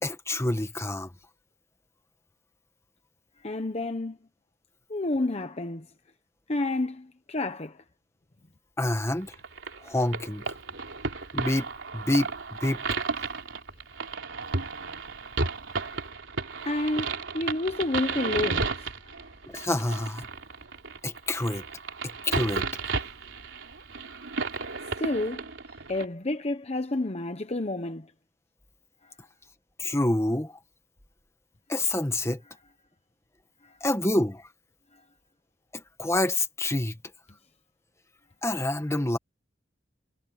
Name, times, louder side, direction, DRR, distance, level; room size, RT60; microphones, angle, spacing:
voice 1, 0.0-1.1 8.8-9.3 9.8-10.4 11.3-12.8 19.5-20.3 21.0-21.6 22.2-22.6 29.8-30.6 31.7-32.4 33.8-34.4 35.7-37.0 38.4-39.2, left 1 dB, 15° left, 1.7 m, -27 dB
voice 2, 3.4-4.2 4.9-5.8 6.5-7.8 16.7-18.9 25.0-25.4 25.9-28.1 33.6-33.7, left 2 dB, 35° left, 1.0 m, -29 dB
sound 1, 9.3-26.1, right 4 dB, 90° right, 3.3 m, -33 dB
head